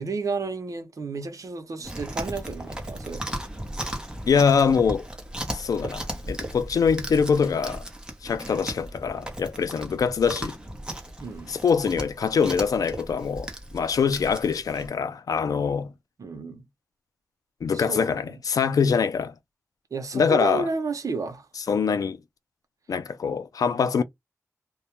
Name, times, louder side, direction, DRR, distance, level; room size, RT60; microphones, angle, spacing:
voice 1, 0.0-3.2 11.2-11.6 16.2-16.7 17.7-18.3 19.9-21.5, right 4 dB, 70° right, 0.7 m, -32 dB
Chewing mastication, 1.8-14.9, right 1 dB, 15° right, 0.7 m, -36 dB
voice 2, 4.3-5.1 5.5-7.8 8.2-10.6 11.5-15.9 17.6-19.3 20.1-20.7 21.7-22.2 22.9-24.0, left 6 dB, 85° left, 0.3 m, -24 dB
2.2 x 2.1 x 2.8 m
wide cardioid pair, 90°, 6 cm